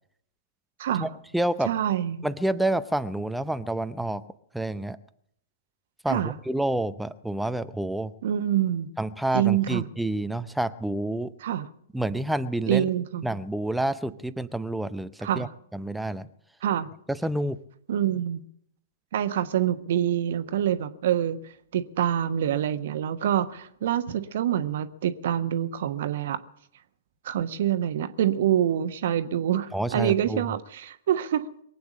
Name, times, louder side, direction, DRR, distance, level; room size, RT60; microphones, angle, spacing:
voice 1, 1.0-1.7 2.2-4.2 4.5-5.0 6.0-8.1 9.0-11.3 11.9-12.9 13.2-15.5 15.7-16.3 17.1-17.6 29.7-30.5, right 1 dB, 5° right, 0.6 m, -28 dB
voice 2, 1.7-2.2 6.1-6.3 8.2-8.9 9.3-9.8 11.4-11.7 12.7-13.3 15.2-15.5 16.6-16.9 17.9-18.4 19.1-21.4 21.7-26.4 27.2-31.5, right 10 dB, 55° right, 1.2 m, -26 dB
22.5 x 8.6 x 7.4 m
figure-of-eight pair, 110°, 0 cm